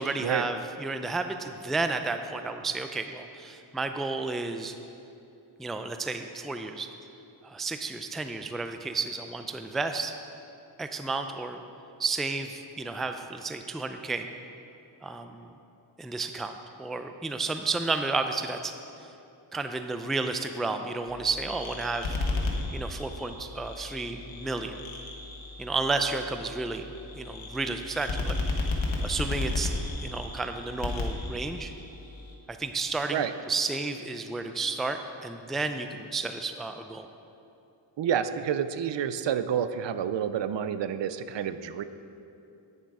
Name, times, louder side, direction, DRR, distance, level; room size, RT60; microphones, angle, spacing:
voice 1, 0.0-4.8 5.6-6.9 7.4-10.2 10.8-11.6 12.0-14.3 15.0-15.5 16.0-16.5 16.8-18.8 19.5-22.2 22.7-24.8 25.6-28.4 29.0-31.7 32.5-37.1, right 3 dB, ahead, 7 dB, 0.3 m, -32 dB
sound 1, 21.1-32.3, left 2 dB, 75° left, 1.4 m, -34 dB
voice 2, 38.0-41.8, right 8 dB, 65° right, 12 dB, 0.5 m, -29 dB
9.5 x 7.4 x 4.8 m, 2.8 s
cardioid pair, 85°, 47 cm